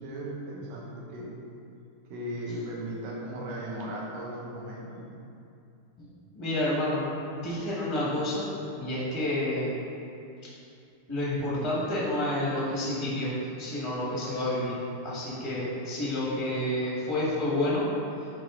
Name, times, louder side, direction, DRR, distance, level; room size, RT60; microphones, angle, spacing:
voice 1, 0.0-1.3 2.1-5.2, right 1 dB, 70° right, -3 dB, 2.2 m, -37 dB
voice 2, 6.3-7.0 7.4-8.5 8.8-9.7 11.1-13.3 13.6-17.8, left 1 dB, 30° left, -7 dB, 0.5 m, -29 dB
9.4 x 3.6 x 3.7 m, 2.6 s
omnidirectional pair, 3.3 m